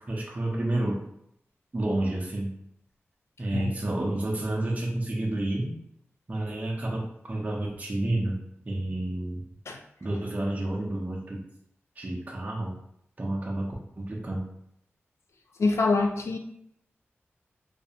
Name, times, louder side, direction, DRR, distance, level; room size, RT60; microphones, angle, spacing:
voice 1, 0.1-1.0 1.7-2.5 3.4-5.8 6.3-8.4 8.7-9.4 10.0-11.4 12.0-12.8 13.2-14.5, right 1 dB, 35° right, -3 dB, 0.5 m, -30 dB
voice 2, 15.6-16.4, left 3 dB, 75° left, 4 dB, 0.3 m, -25 dB
2.4 x 2.1 x 2.7 m, 0.73 s
wide cardioid pair, 80°, 5 cm